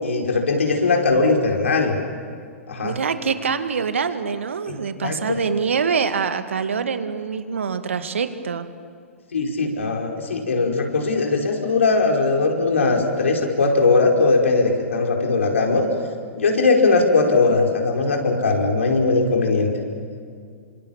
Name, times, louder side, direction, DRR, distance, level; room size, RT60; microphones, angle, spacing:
voice 1, 0.0-2.0 2.7-3.0 4.7-4.8 5.0-5.4 9.3-15.9 16.3-19.7, left 3 dB, 70° left, 2 dB, 5.0 m, -19 dB
voice 2, 2.8-8.7, right 6 dB, 70° right, 9 dB, 2.0 m, -25 dB
29.5 x 25.5 x 7.3 m, 2.2 s
figure-of-eight pair, 110°, 7 cm